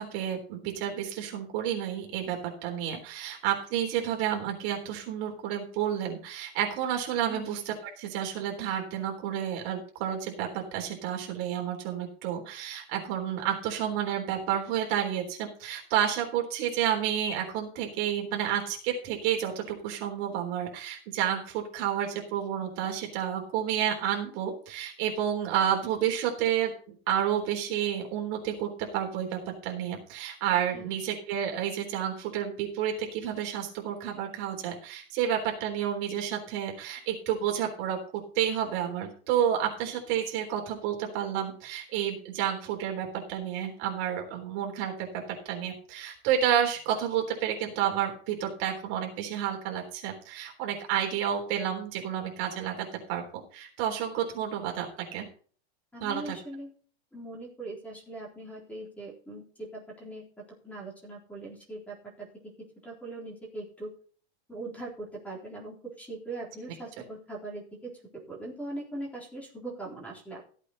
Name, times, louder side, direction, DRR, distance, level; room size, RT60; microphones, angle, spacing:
voice 1, 0.0-26.7 27.1-38.0 38.4-52.8 53.1-54.9 55.1-55.3 56.0-56.4, right 9 dB, 40° right, 2 dB, 3.7 m, -30 dB
voice 2, 7.3-7.6 30.7-30.9 55.9-56.7 57.1-60.2 60.6-62.3 62.8-63.9 64.5-67.9 68.3-70.4, right 2 dB, 5° left, -2 dB, 3.8 m, -41 dB
14.5 x 8.3 x 4.1 m, 0.43 s
supercardioid pair, 170°, 33 cm